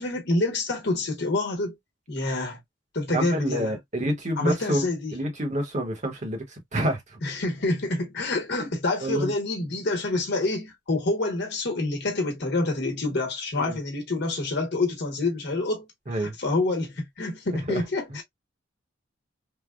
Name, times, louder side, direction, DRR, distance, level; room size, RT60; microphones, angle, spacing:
voice 1, 0.0-1.8 2.1-2.6 2.9-3.7 4.4-5.1 7.2-15.9 16.2-18.2, left 2 dB, 60° left, 1.1 m, -27 dB
voice 2, 3.1-7.2 8.6-8.7 9.0-9.3 13.6-13.8 16.1-16.3 17.7-17.8, right 1 dB, 40° right, 1.0 m, -28 dB
3.3 x 2.2 x 2.3 m
head